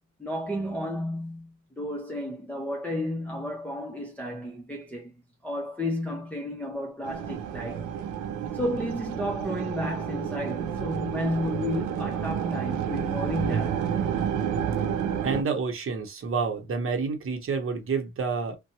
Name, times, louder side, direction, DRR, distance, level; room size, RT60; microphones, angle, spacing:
voice 1, 0.2-5.1 5.4-7.9 8.5-13.9, left 1 dB, 5° left, 0.8 m, -32 dB
sound 1, 7.0-15.4, right 8 dB, 80° right, 0.6 m, -30 dB
voice 2, 15.2-18.5, right 5 dB, 45° right, 0.9 m, -29 dB
2.6 x 2.2 x 2.8 m
cardioid pair, 90°, 30 cm